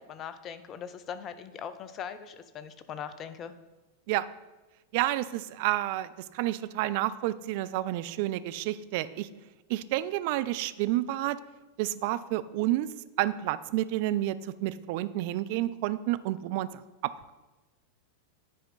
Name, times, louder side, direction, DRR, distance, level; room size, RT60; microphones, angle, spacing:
voice 1, 0.0-3.5, left 8 dB, 30° left, 11 dB, 0.5 m, -40 dB
voice 2, 4.9-6.1 6.3-9.3 9.7-11.4 11.8-12.9 13.2-14.4 14.6-16.7, right 15 dB, 50° right, 14 dB, 0.3 m, -29 dB
9.8 x 4.3 x 4.1 m, 1.1 s
figure-of-eight pair, 90°, 0 cm